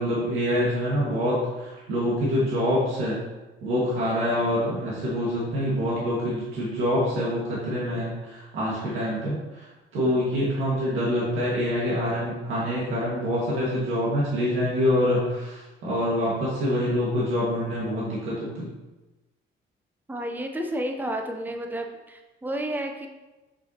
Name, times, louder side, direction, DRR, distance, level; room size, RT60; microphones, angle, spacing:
voice 1, 0.0-3.2 3.6-18.7, equal, 85° right, -7 dB, 1.9 m, -26 dB
voice 2, 9.9-10.3 20.1-23.1, right 1 dB, 10° right, 4 dB, 0.7 m, -31 dB
6.7 x 6.0 x 2.9 m, 1.1 s
cardioid pair, 90°, 20 cm